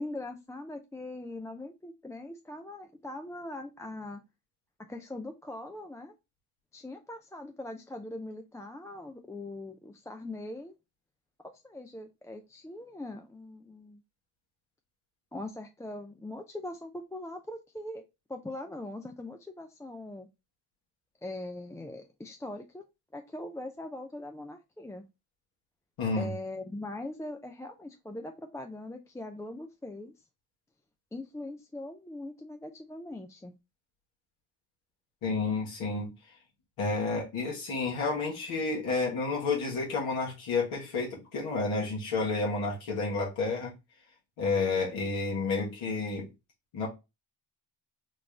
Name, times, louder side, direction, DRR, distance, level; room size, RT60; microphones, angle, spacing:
voice 1, 0.0-4.2 4.8-6.1 6.7-10.8 11.4-14.0 15.3-18.0 18.3-20.3 21.2-22.8 23.1-25.0 26.2-30.1 31.1-33.5, left 2 dB, 5° left, 0.3 m, -41 dB
voice 2, 26.0-26.3 35.2-36.1 36.8-43.7 44.4-46.3 46.7-46.9, left 3 dB, 75° left, 1.5 m, -30 dB
4.0 x 2.4 x 3.3 m
supercardioid pair, 55°, 50 cm